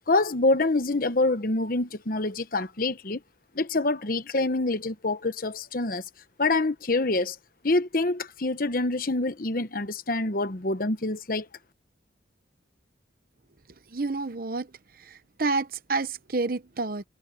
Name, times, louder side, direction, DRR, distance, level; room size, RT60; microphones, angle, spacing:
voice 1, 0.1-3.2 3.6-6.0 6.4-7.4 7.6-11.5, left 2 dB, 50° left, 1.0 m, -26 dB
voice 2, 13.9-14.7 15.4-17.0, right 3 dB, 50° right, 0.9 m, -28 dB
head